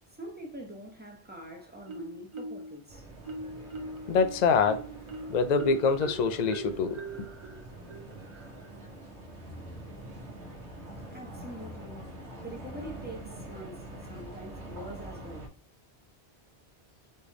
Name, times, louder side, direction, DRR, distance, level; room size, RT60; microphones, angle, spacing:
voice 1, 0.1-3.0 10.0-10.4 11.1-12.1 12.4-15.5, right 1 dB, 10° right, 1.0 m, -44 dB
Marimba xylophone, 1.9-2.8 3.2-8.8, right 2 dB, 40° right, 0.5 m, -41 dB
sound 1, 2.9-15.5, right 1 dB, 80° right, 1.3 m, -45 dB
voice 2, 4.1-4.9 5.3-7.0, left 5 dB, 50° left, 0.5 m, -25 dB
4.4 x 3.3 x 3.0 m
omnidirectional pair, 1.1 m